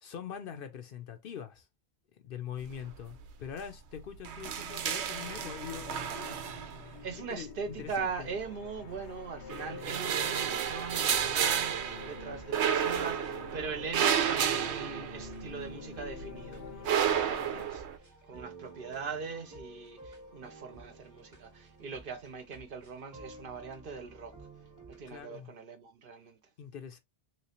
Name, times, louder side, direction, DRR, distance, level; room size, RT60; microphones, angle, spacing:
voice 1, 0.0-1.7 2.1-7.0 7.3-8.3 25.1-25.5 26.6-27.0, left 8 dB, 60° left, 0.7 m, -43 dB
sound 1, 2.7-3.2 3.5-3.6 4.0-7.1 8.0-8.9 9.4-15.7 16.0-18.0, right 8 dB, 85° right, 0.9 m, -31 dB
sound 2, 5.3-17.7, left 6 dB, 80° left, 1.0 m, -48 dB
voice 2, 7.0-24.3 24.9-26.4, right 5 dB, 55° right, 0.8 m, -41 dB
sound 3, 10.9-25.2, right 2 dB, 20° right, 0.9 m, -53 dB
3.2 x 3.0 x 2.8 m
omnidirectional pair, 1.1 m